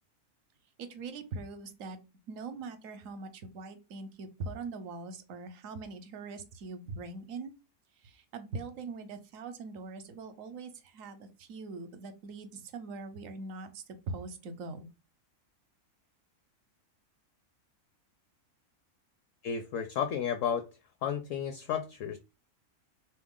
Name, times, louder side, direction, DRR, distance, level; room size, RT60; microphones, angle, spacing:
voice 1, 0.8-2.0 2.3-7.5 8.0-14.9, right 3 dB, 65° right, 1.0 m, -42 dB
voice 2, 19.4-20.7 21.0-22.2, left 8 dB, 70° left, 0.8 m, -32 dB
3.8 x 3.0 x 3.6 m
omnidirectional pair, 1.6 m